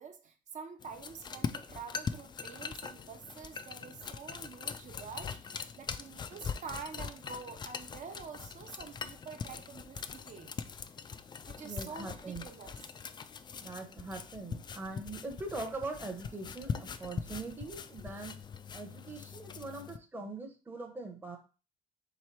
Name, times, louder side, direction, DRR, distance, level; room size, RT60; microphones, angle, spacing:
voice 1, 0.0-10.5 11.4-12.9, right 6 dB, 45° right, 0.8 m, -47 dB
sound 1, 0.8-20.0, left 6 dB, 25° left, 0.3 m, -42 dB
voice 2, 11.6-12.4 13.6-18.4 18.7-21.4, right 3 dB, 10° right, 0.8 m, -42 dB
3.3 x 3.0 x 4.5 m
cardioid pair, 110°, 17 cm